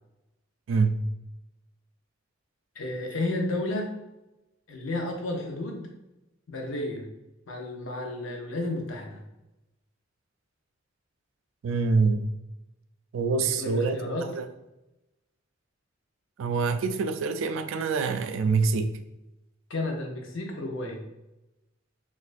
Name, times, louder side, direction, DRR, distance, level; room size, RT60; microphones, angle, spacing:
voice 1, 0.7-1.1 11.6-12.3 13.1-14.0 14.3-14.4 16.4-18.9, right 4 dB, 75° right, 8 dB, 0.3 m, -25 dB
voice 2, 2.8-4.0 4.7-5.9 6.5-7.1 7.5-9.3 13.4-14.3 19.7-21.0, left 2 dB, 80° left, 2 dB, 0.7 m, -32 dB
4.1 x 2.5 x 2.5 m, 0.94 s
head